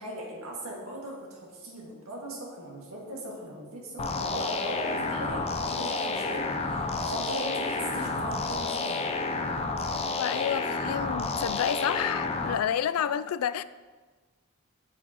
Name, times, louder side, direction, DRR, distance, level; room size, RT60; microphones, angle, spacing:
voice 1, 0.0-9.0, right 1 dB, 80° right, -2 dB, 1.8 m, -39 dB
sound 1, 4.0-12.6, left 3 dB, 30° left, 0.5 m, -30 dB
voice 2, 9.9-13.6, left 9 dB, 90° left, 16 dB, 0.3 m, -30 dB
8.3 x 7.2 x 3.0 m, 1.4 s
head